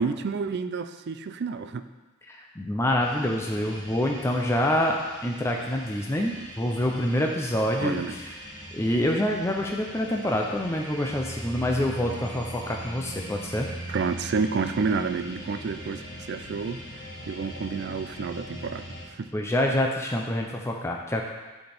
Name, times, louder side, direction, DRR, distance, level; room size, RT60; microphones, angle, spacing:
voice 1, 0.0-1.8 7.8-8.2 13.9-16.8 17.3-19.3, right 5 dB, 50° right, 10 dB, 0.4 m, -29 dB
voice 2, 2.3-5.0 5.2-8.3 8.7-13.7 19.3-21.2, left 1 dB, 10° left, 0 dB, 0.5 m, -26 dB
sound 1, 3.0-19.0, equal, 55° left, 2.5 m, -41 dB
10.5 x 4.3 x 3.5 m, 1.2 s
head